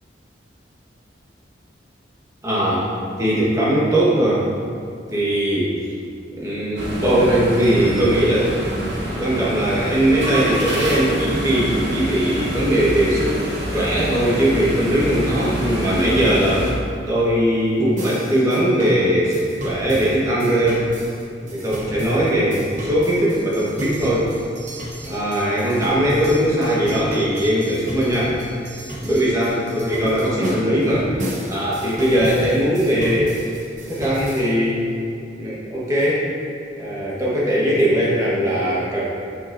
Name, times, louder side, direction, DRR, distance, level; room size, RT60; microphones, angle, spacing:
voice 1, 2.4-2.9 3.2-4.4 5.1-5.8 6.4-8.6 9.2-13.4 13.7-16.7 17.1-20.8 21.5-24.3 25.1-28.4 29.0-31.1 31.5-33.4 33.9-34.8 35.3-36.3 36.8-39.0, right 1 dB, 20° right, -7 dB, 1.3 m, -19 dB
sound 1, 6.8-16.7, equal, 80° right, 1.1 m, -27 dB
sound 2, 18.0-34.5, right 1 dB, 40° right, 0.9 m, -33 dB
7.0 x 5.7 x 2.6 m, 2.4 s
head